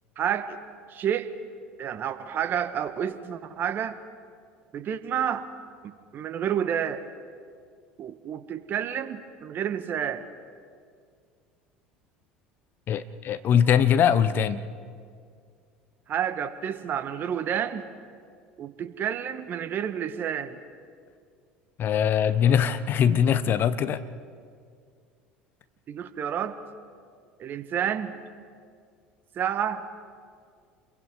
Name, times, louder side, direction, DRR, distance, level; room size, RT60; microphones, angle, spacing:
voice 1, 0.2-0.6 0.9-1.3 1.8-4.0 4.7-5.5 6.1-7.0 8.0-10.3 16.1-17.9 18.6-20.6 25.9-26.6 27.4-28.1 29.3-29.8, right 9 dB, 45° right, 11 dB, 1.5 m, -29 dB
voice 2, 12.9-14.6 21.8-24.0, left 8 dB, 45° left, 13 dB, 1.1 m, -22 dB
29.0 x 22.5 x 4.8 m, 2.1 s
hypercardioid pair, 70°, 5 cm